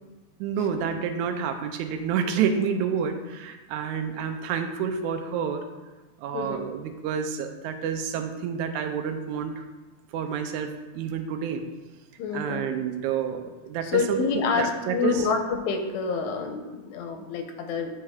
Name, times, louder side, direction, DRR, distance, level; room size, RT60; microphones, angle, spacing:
voice 1, 0.4-5.6 6.2-9.7 10.1-11.6 12.3-14.2 14.5-15.3, right 7 dB, 90° right, 7 dB, 2.0 m, -29 dB
voice 2, 12.2-12.7 13.8-17.9, left 5 dB, 90° left, 5 dB, 2.0 m, -27 dB
9.4 x 3.3 x 3.5 m, 1.2 s
omnidirectional pair, 3.3 m